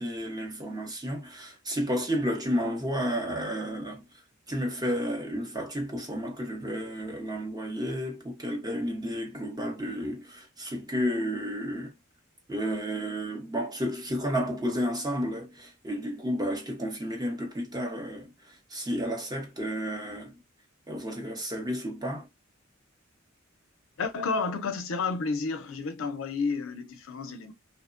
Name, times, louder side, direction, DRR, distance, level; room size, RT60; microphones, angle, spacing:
voice 1, 0.0-4.0 4.5-11.9 12.5-18.3 18.7-20.3 20.9-22.3, equal, 20° right, 0.8 m, -31 dB
voice 2, 24.0-27.5, left 4 dB, 70° left, 0.5 m, -31 dB
3.0 x 2.1 x 2.4 m
head